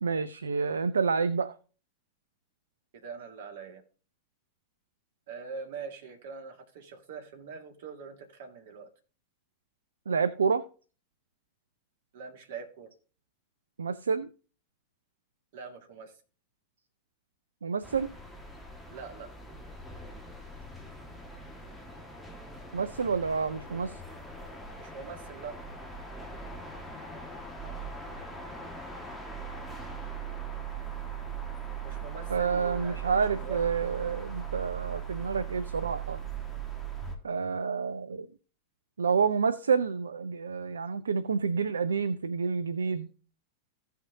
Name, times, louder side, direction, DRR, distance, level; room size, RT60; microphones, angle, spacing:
voice 1, 0.0-1.5 10.1-10.6 13.8-14.3 17.6-18.1 22.7-24.0 32.3-36.2 37.2-38.3 39.0-43.1, right 5 dB, 70° right, 0.4 m, -29 dB
voice 2, 2.9-3.8 5.3-8.9 12.1-12.9 15.5-16.1 18.9-19.3 24.8-25.6 31.8-33.6, right 5 dB, 55° right, 1.8 m, -43 dB
sound 1, 17.8-37.2, right 6 dB, 5° left, 1.7 m, -40 dB
15.5 x 5.8 x 2.7 m
figure-of-eight pair, 90°, 0 cm